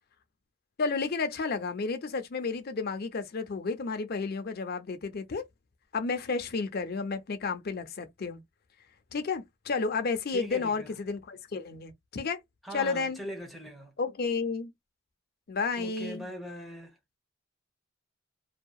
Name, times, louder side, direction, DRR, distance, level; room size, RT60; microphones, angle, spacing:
voice 1, 0.8-5.4 5.9-8.4 9.1-12.4 12.7-13.2 14.0-14.7 15.5-16.3, left 4 dB, 50° left, 0.5 m, -32 dB
voice 2, 10.3-10.9 12.6-13.9 15.8-16.9, equal, ahead, 0.8 m, -41 dB
2.7 x 2.2 x 2.3 m
head